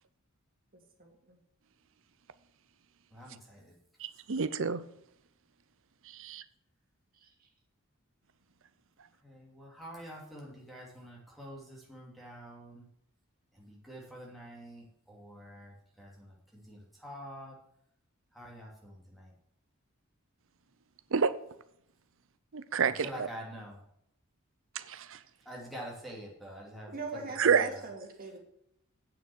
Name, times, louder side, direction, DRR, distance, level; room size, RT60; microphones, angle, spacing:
voice 1, 1.0-1.4 7.2-7.3 26.9-28.4, right 3 dB, 45° right, 1 dB, 2.5 m, -41 dB
voice 2, 3.1-3.7 9.2-12.8 13.6-17.5 18.3-19.3 23.0-23.8 25.5-26.9 27.4-27.8, equal, ahead, -4 dB, 2.7 m, -47 dB
voice 3, 4.0-4.8 6.1-6.4 21.1-21.3 22.5-23.3 24.8-25.2 27.4-27.7, right 6 dB, 65° right, 14 dB, 0.7 m, -28 dB
9.0 x 7.1 x 6.2 m, 0.74 s
head